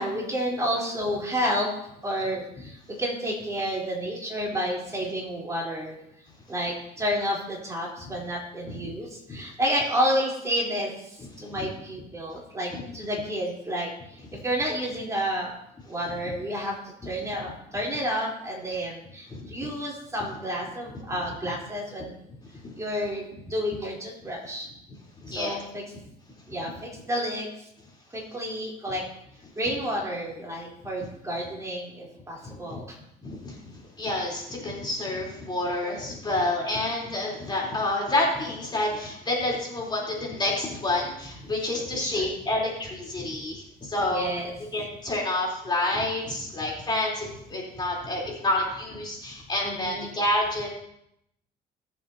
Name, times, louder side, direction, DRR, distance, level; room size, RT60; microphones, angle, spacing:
voice 1, 0.0-1.7 2.0-6.0 6.5-15.5 15.8-22.2 22.8-24.7 25.3-25.8 26.5-27.7 28.1-29.0 29.6-33.0 35.8-36.0 37.0-37.4 41.9-42.3 43.3-43.4 44.1-44.5 49.6-50.1, equal, 20° right, -3 dB, 3.8 m, -30 dB
voice 2, 19.3-19.7 22.6-22.7 25.2-25.6 32.4-32.8 33.2-44.3 44.7-50.7, left 1 dB, 25° left, -3 dB, 3.7 m, -29 dB
22.5 x 7.5 x 2.9 m, 0.78 s
cardioid pair, 110°, 17 cm